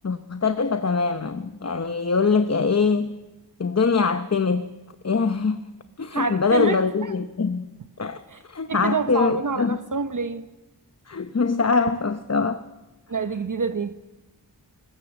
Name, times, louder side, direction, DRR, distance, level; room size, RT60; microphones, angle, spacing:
voice 1, 0.0-3.2 3.6-4.7 5.0-5.6 6.0-7.7 8.0-9.8 11.1-12.6, left 4 dB, 40° left, 10 dB, 0.8 m, -23 dB
voice 2, 6.1-7.1 8.3-8.4 8.7-10.5 13.1-13.9, right 4 dB, 50° right, 10 dB, 0.9 m, -27 dB
20.5 x 18.5 x 7.1 m, 1.1 s
wide cardioid pair, 55°, 40 cm